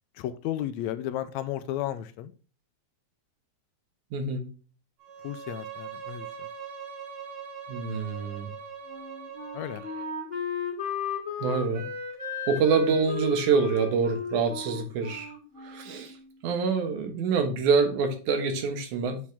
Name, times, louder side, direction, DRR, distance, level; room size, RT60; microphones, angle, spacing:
voice 1, 0.2-2.3 5.2-6.3 9.5-9.8, left 12 dB, 80° left, 1.8 m, -33 dB
voice 2, 4.1-4.4 7.7-8.5 11.4-11.8 12.5-15.4 15.6-16.1 16.4-19.2, right 5 dB, 85° right, 2.8 m, -26 dB
Bowed string instrument, 5.0-10.2, right 7 dB, 55° right, 1.2 m, -41 dB
Wind instrument woodwind instrument, 8.9-16.4, left 6 dB, 10° left, 2.4 m, -35 dB
7.3 x 4.9 x 3.4 m
omnidirectional pair, 3.4 m